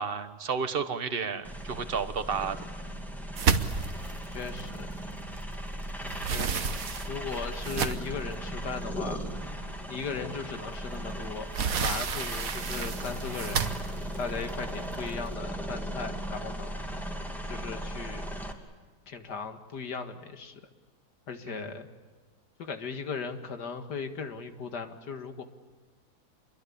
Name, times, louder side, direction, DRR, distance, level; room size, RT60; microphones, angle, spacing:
voice 1, 0.0-2.6 21.5-21.7, right 6 dB, 35° right, 10 dB, 1.4 m, -32 dB
sound 1, 1.4-18.5, equal, ahead, 2.4 m, -37 dB
sound 2, 3.4-5.5 5.9-8.3 8.9-9.0 9.5-9.6 11.0-15.3, right 6 dB, 60° right, 1.5 m, -31 dB
voice 2, 4.3-4.9 6.2-6.8 7.1-9.2 9.9-13.7 14.2-16.8 17.5-18.3 19.1-20.6 21.3-21.9 22.6-25.4, left 5 dB, 85° left, 7 dB, 2.4 m, -37 dB
28.0 x 22.5 x 8.6 m, 1.4 s
omnidirectional pair, 1.7 m